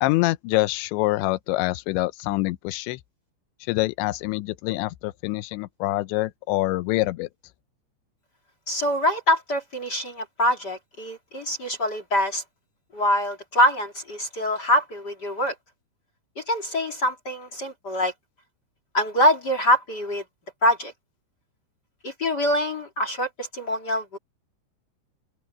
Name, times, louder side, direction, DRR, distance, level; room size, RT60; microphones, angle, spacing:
voice 1, 0.0-3.0 3.7-7.3, left 19 dB, 80° left, 3.0 m, -25 dB
voice 2, 8.7-12.4 12.9-15.5 16.4-18.1 18.9-20.2 20.6-20.9 22.0-24.2, left 1 dB, 35° left, 1.9 m, -24 dB
open air
omnidirectional pair, 5.4 m